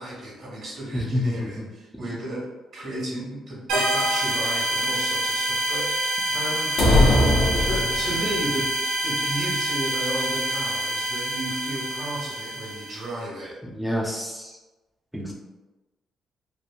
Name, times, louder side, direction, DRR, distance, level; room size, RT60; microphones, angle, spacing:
voice 1, 0.0-2.5 2.7-6.8 7.6-8.7 9.0-13.6, right 1 dB, 60° right, -4 dB, 1.4 m, -33 dB
voice 2, 0.9-1.7 1.9-2.0 13.6-14.6 15.1-15.3, left 1 dB, ahead, -3 dB, 0.5 m, -28 dB
sound 1, 3.7-13.1, right 1 dB, 90° right, 0.4 m, -26 dB
sound 2, 6.8-8.4, left 1 dB, 80° left, 0.6 m, -19 dB
3.0 x 2.2 x 2.4 m, 1.1 s
cardioid pair, 90°, 0 cm